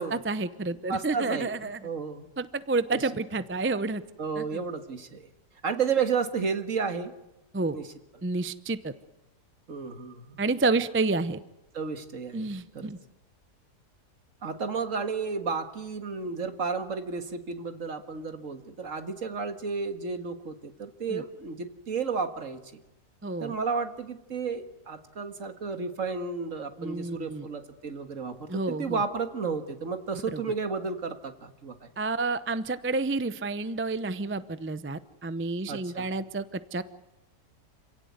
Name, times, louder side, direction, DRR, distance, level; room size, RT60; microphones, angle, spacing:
voice 1, 0.0-1.8 2.4-4.0 4.4-4.6 7.5-7.8 8.2-8.9 10.4-11.4 12.3-13.0 21.1-21.2 23.2-23.5 26.8-27.5 28.5-29.0 30.3-30.4 32.0-36.8, right 3 dB, 20° right, 14 dB, 0.3 m, -30 dB
voice 2, 0.9-2.3 2.9-3.0 4.2-5.3 5.6-7.1 7.7-7.9 9.7-10.4 11.7-12.4 12.7-12.9 14.4-22.6 23.4-31.9 35.7-36.1, right 5 dB, 55° right, 8 dB, 2.0 m, -32 dB
27.0 x 17.0 x 9.5 m, 0.98 s
omnidirectional pair, 1.7 m